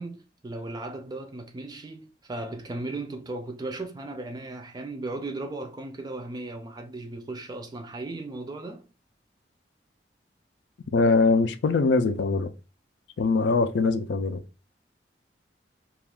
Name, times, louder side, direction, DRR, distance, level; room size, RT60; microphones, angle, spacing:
voice 1, 0.0-8.9, right 2 dB, 25° right, 0.3 m, -36 dB
voice 2, 10.9-12.5 13.2-14.4, left 3 dB, 80° left, 0.4 m, -22 dB
2.4 x 2.3 x 3.4 m
head